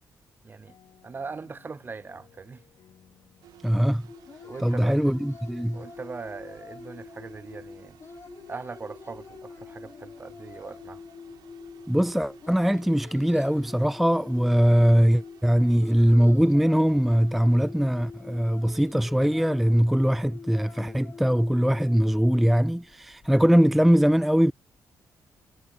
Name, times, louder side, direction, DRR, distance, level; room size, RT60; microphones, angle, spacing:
voice 1, 0.4-0.8 1.0-2.6 4.4-5.0 5.7-8.0 8.5-11.0, right 4 dB, 30° right, 0.7 m, -40 dB
sound 1, 0.7-5.3, left 9 dB, 70° left, 4.0 m, -60 dB
sound 2, 3.4-22.0, right 13 dB, 90° right, 5.5 m, -56 dB
voice 2, 3.6-4.0 4.6-5.8 11.9-24.5, equal, ahead, 0.3 m, -21 dB
sound 3, 4.1-23.6, left 5 dB, 40° left, 1.4 m, -46 dB
cardioid pair, 85°, 7 cm